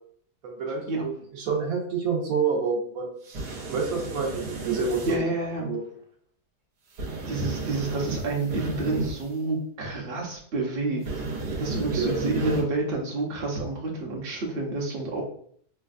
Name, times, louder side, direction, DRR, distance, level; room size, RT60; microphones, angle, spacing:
voice 1, 0.4-3.2 3.7-5.2 5.6-5.8 12.0-12.6, right 5 dB, 65° right, -1 dB, 1.2 m, -28 dB
sound 1, 3.2-5.2 6.9-9.3 11.0-12.6, right 3 dB, 85° right, 1.4 m, -33 dB
voice 2, 5.1-5.7 7.3-11.0 11.6-15.2, right 2 dB, 45° right, -2 dB, 0.9 m, -29 dB
5.1 x 2.2 x 2.4 m, 0.62 s
omnidirectional pair, 1.7 m